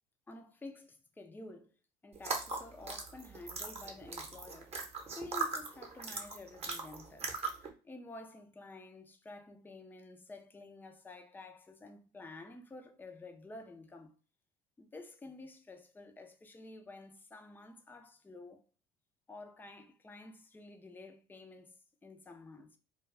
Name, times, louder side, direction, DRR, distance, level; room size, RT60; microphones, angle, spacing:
voice 1, 0.3-1.7 2.0-4.8 5.1-14.1 14.8-18.6 19.3-21.8 22.0-22.8, left 2 dB, 10° left, 0.5 m, -51 dB
sound 1, 2.2-7.7, right 4 dB, 30° right, 0.8 m, -39 dB
2.3 x 2.3 x 3.2 m
hypercardioid pair, 70°, 20 cm